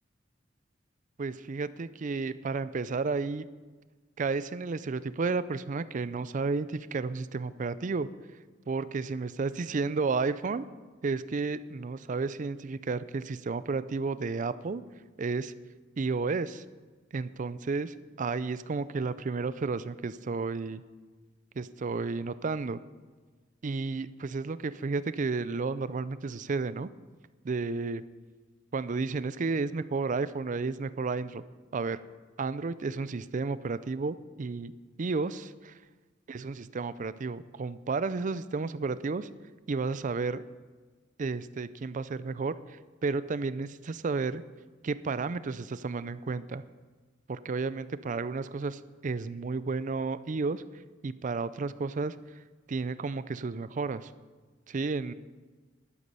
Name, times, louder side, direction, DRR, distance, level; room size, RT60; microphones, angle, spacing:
voice 1, 1.2-3.5 4.2-8.1 8.7-10.6 11.0-14.8 15.2-15.5 16.0-16.6 17.1-20.8 21.6-22.8 23.6-26.9 27.4-28.0 28.7-31.4 31.7-32.0 32.4-34.7 35.0-35.8 36.3-39.3 39.7-40.4 41.2-44.4 44.8-46.6 47.3-50.6 51.0-52.2 52.7-54.1 54.7-55.1, right 4 dB, 40° right, 15 dB, 0.4 m, -32 dB
11.5 x 9.5 x 6.8 m, 1.4 s
head